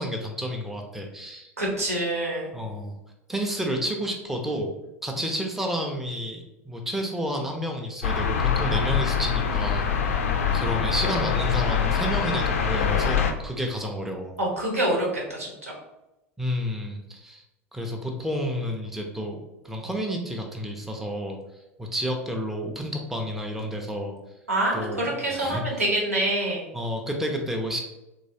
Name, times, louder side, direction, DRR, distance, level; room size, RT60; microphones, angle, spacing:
voice 1, 0.0-1.5 2.5-3.0 3.3-4.7 5.0-10.2 10.5-14.3 16.4-17.4 17.7-21.4 21.8-24.2 24.7-25.8 26.7-27.8, equal, 5° right, 1 dB, 0.5 m, -30 dB
voice 2, 1.6-2.5 14.4-15.7 24.5-26.6, right 1 dB, 80° right, -3 dB, 1.0 m, -26 dB
sound 1, 8.0-13.3, left 7 dB, 70° left, 0.4 m, -24 dB
3.0 x 3.0 x 2.7 m, 0.92 s
figure-of-eight pair, 80°, 8 cm